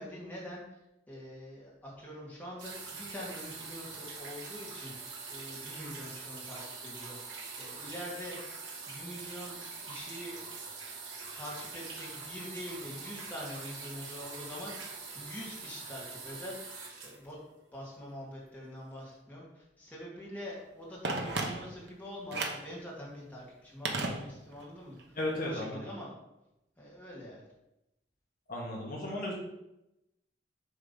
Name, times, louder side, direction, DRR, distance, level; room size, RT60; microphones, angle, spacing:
voice 1, 0.0-8.4 8.9-10.4 11.4-17.4 17.7-25.2 25.4-26.1 26.8-27.5, equal, 10° left, -6 dB, 2.0 m, -45 dB
sound 1, 2.6-18.0 18.9-19.0, right 4 dB, 85° right, 2.3 m, -44 dB
Telephone, 21.0-21.9 22.3-22.7 23.9-24.7 25.0-25.1, right 3 dB, 70° right, 1.0 m, -34 dB
voice 2, 25.2-25.8 28.5-29.3, left 1 dB, 50° left, -3 dB, 1.4 m, -34 dB
7.9 x 3.6 x 5.5 m, 0.90 s
head